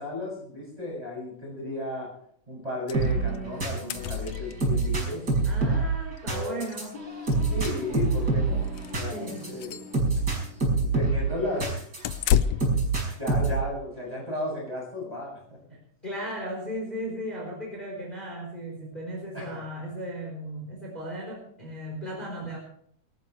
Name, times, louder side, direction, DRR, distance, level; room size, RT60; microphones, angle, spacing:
voice 1, 0.0-2.1 2.5-5.3 7.5-8.7 9.0-9.7 10.8-11.7 13.2-15.8 19.3-19.5, left 1 dB, 10° right, -4 dB, 7.2 m, -34 dB
sound 1, 2.9-3.1 3.3-3.4 3.6-4.9 6.2-6.3 6.6-6.7 7.2-8.2 8.7-8.9 9.4-9.9 12.0-12.9, left 9 dB, 75° left, 1.6 m, -29 dB
sound 2, 2.9-12.2 12.6-13.7, right 3 dB, 30° right, 5.9 m, -26 dB
voice 2, 5.4-7.0 9.1-9.5 16.0-22.6, equal, 15° left, -2 dB, 4.2 m, -36 dB
23.0 x 13.5 x 3.3 m, 0.64 s
omnidirectional pair, 3.7 m